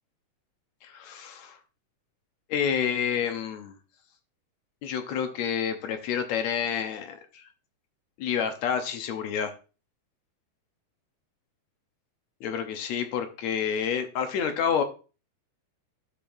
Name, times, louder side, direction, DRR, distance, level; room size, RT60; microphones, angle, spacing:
voice 1, 0.8-1.6 2.5-3.8 4.8-7.5 8.2-9.5 12.4-14.8, left 7 dB, 70° left, 7 dB, 1.9 m, -29 dB
13.5 x 5.1 x 2.6 m, 0.34 s
omnidirectional pair, 3.7 m